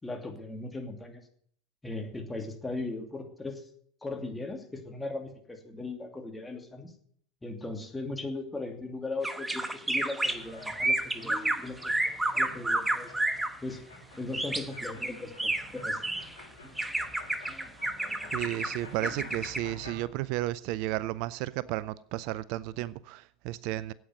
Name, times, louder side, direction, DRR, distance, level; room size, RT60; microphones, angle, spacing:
voice 1, 0.0-1.2 1.8-3.6 4.0-6.9 7.4-13.1 13.6-13.8 14.2-16.0, left 2 dB, 10° left, 2.7 m, -38 dB
sound 1, 9.2-13.5 14.3-16.4 16.8-19.6, right 2 dB, 10° right, 1.1 m, -30 dB
sound 2, 10.3-20.1, left 2 dB, 90° left, 3.6 m, -50 dB
voice 2, 18.3-23.9, right 16 dB, 60° right, 0.5 m, -33 dB
9.3 x 8.9 x 9.3 m
hypercardioid pair, 90°, 0 cm